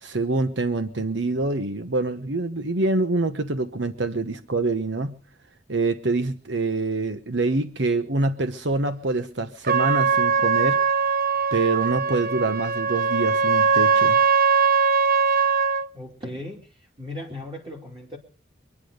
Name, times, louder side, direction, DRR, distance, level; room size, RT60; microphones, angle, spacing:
voice 1, 0.0-5.2 5.7-10.8 11.5-14.2, right 3 dB, 80° right, 9 dB, 1.1 m, -25 dB
Trumpet, 9.6-15.9, right 5 dB, 55° right, 0.9 m, -21 dB
voice 2, 15.9-16.7 17.0-18.2, left 1 dB, 25° right, -1 dB, 3.1 m, -36 dB
24.5 x 9.9 x 5.1 m, 0.40 s
head